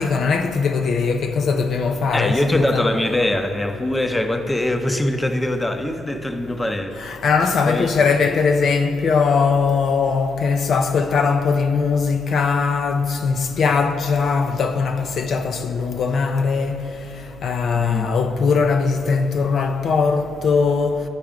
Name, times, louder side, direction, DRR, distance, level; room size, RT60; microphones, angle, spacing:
voice 1, 0.0-2.9 7.0-16.8 17.4-21.0, left 5 dB, 60° left, 0.5 m, -20 dB
voice 2, 2.1-6.9 7.7-8.0 17.7-18.1, left 1 dB, 15° left, 0.6 m, -22 dB
10.5 x 4.7 x 5.1 m
cardioid pair, 90°, 0 cm